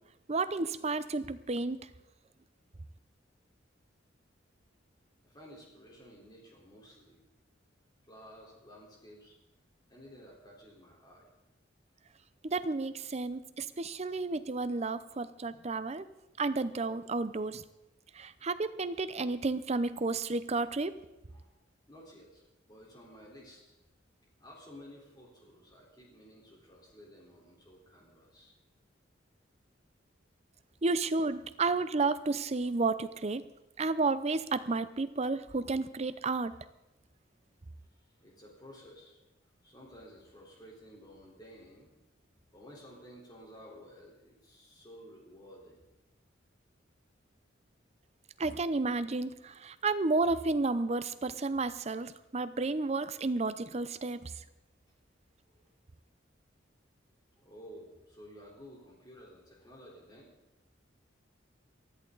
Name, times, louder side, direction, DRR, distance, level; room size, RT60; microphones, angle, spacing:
voice 1, 0.3-1.9 12.4-16.1 16.4-17.6 18.1-20.9 30.8-33.5 33.8-36.5 48.4-54.4, right 3 dB, 35° right, 13 dB, 0.6 m, -32 dB
voice 2, 5.2-7.2 8.1-9.3 9.9-11.3 21.3-21.5 21.9-23.7 24.4-28.5 37.9-39.2 39.6-41.9 42.5-45.8 55.5-55.6 57.3-60.3, equal, 20° left, -3 dB, 4.0 m, -53 dB
19.0 x 13.5 x 4.0 m, 1.0 s
head